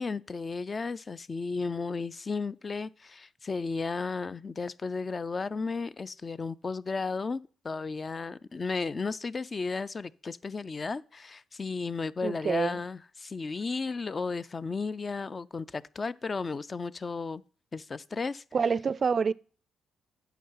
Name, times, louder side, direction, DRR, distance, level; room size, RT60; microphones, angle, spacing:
voice 1, 0.0-17.4 17.7-18.4, left 4 dB, 35° left, 0.4 m, -34 dB
voice 2, 12.2-12.8 18.5-19.3, right 6 dB, 45° right, 0.3 m, -27 dB
9.2 x 5.7 x 5.6 m
cardioid pair, 80°, 0 cm